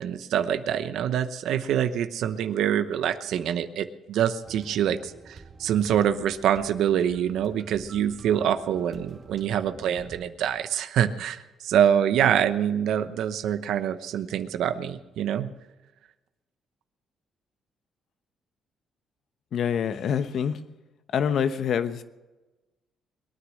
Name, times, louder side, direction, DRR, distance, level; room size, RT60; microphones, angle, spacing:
voice 1, 0.0-15.5, right 9 dB, 80° right, 11 dB, 0.9 m, -25 dB
sound 1, 4.4-10.3, right 4 dB, 40° right, 2.1 m, -48 dB
voice 2, 19.5-20.6 21.1-22.0, left 7 dB, 65° left, 11 dB, 1.0 m, -26 dB
21.5 x 9.7 x 6.5 m, 1.1 s
cardioid pair, 90°, 0 cm